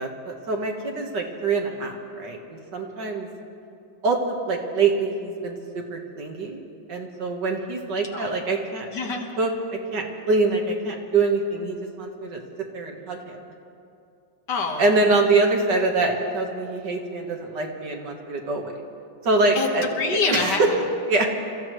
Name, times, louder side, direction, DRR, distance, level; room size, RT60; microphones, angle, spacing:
voice 1, 0.0-3.3 4.0-6.6 6.9-8.9 9.4-9.5 9.9-12.4 12.7-13.4 14.8-18.8 19.2-19.8 20.3-20.7 21.1-21.3, right 3 dB, 60° right, 2 dB, 2.0 m, -24 dB
voice 2, 8.9-9.3 14.5-14.9 19.6-20.9, left 4 dB, 60° left, 2 dB, 1.9 m, -26 dB
28.0 x 15.0 x 3.1 m, 2.6 s
omnidirectional pair, 2.1 m